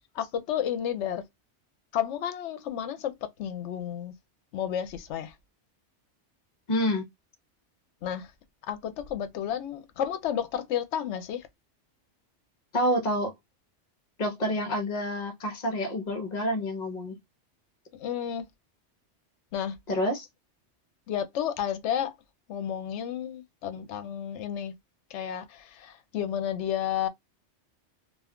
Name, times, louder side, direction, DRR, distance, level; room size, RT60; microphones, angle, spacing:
voice 1, 0.1-1.2 1.9-3.1 3.4-4.1 4.5-5.3 8.0-8.3 8.7-11.5 17.9-18.4 19.5-19.8 21.1-22.1 22.5-24.7 25.1-27.1, left 9 dB, 75° left, 0.9 m, -31 dB
voice 2, 6.7-7.0 12.7-13.3 14.2-17.2 19.9-20.3, equal, 40° left, 0.8 m, -28 dB
2.4 x 2.3 x 3.5 m
omnidirectional pair, 1.2 m